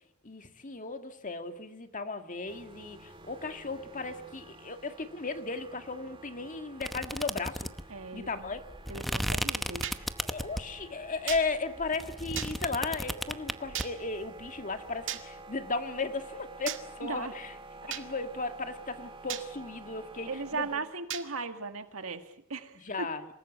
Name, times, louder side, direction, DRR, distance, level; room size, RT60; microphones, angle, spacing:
voice 1, 0.2-7.7 8.1-8.6 10.2-17.5 17.9-20.8 22.9-23.3, left 3 dB, 40° left, 7 dB, 1.9 m, -36 dB
sound 1, 2.5-20.8, right 2 dB, 25° right, 1.9 m, -50 dB
sound 2, 6.8-10.8 11.3-13.9, equal, ahead, 0.8 m, -34 dB
voice 2, 7.9-8.5 8.9-9.9 17.0-17.3 20.2-23.1, right 4 dB, 80° right, 8 dB, 2.1 m, -37 dB
sound 3, 9.8-10.0 11.3-11.4 12.4-12.5 13.7-13.9 15.1-15.2 16.7-16.8 17.9-18.1 19.3-19.5 21.1-21.3, right 11 dB, 65° right, 2.1 m, -35 dB
27.5 x 19.0 x 8.3 m, 0.77 s
head